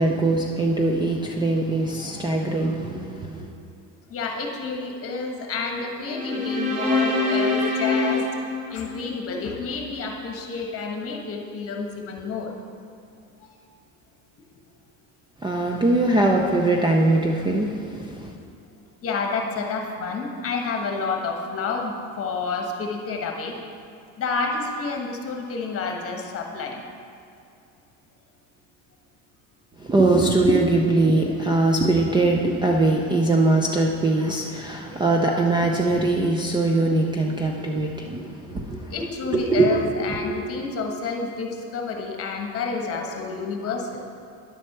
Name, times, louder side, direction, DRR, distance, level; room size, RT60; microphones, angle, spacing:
voice 1, 0.0-3.5 15.4-18.3 29.8-38.9 39.3-39.8, right 2 dB, 10° right, 0 dB, 0.5 m, -21 dB
voice 2, 4.1-12.5 13.4-13.5 19.0-23.6 24.2-26.8 38.9-44.0 44.3-44.4, left 4 dB, 35° left, 2 dB, 1.4 m, -29 dB
sound 1, 6.0-9.4, left 2 dB, 40° right, 1.5 m, -25 dB
10.5 x 4.3 x 6.7 m, 2.5 s
cardioid pair, 125°, 38 cm